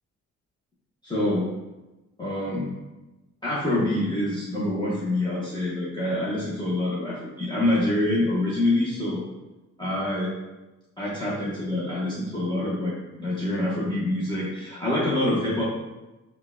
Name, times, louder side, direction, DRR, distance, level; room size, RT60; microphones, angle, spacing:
voice 1, 1.0-1.5 2.2-2.7 3.4-9.2 9.8-10.3 11.0-12.9 13.2-15.6, left 1 dB, 15° left, -8 dB, 0.9 m, -26 dB
4.4 x 2.3 x 3.6 m, 1.1 s
cardioid pair, 90°, 30 cm